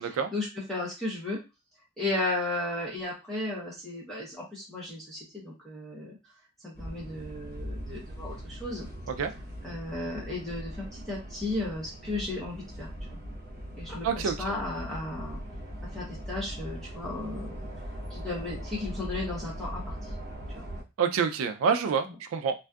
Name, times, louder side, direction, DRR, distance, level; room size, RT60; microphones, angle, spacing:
voice 1, 0.1-1.4 2.0-6.2 6.6-8.9 9.6-12.9 13.8-15.4 15.8-17.7 18.1-20.1 20.5-20.6, left 2 dB, ahead, -7 dB, 0.6 m, -35 dB
sound 1, 6.7-20.8, equal, 45° right, 0.9 m, -40 dB
voice 2, 14.0-14.3 21.0-22.5, right 6 dB, 75° right, 8 dB, 0.3 m, -27 dB
2.5 x 2.3 x 2.2 m, 0.27 s
head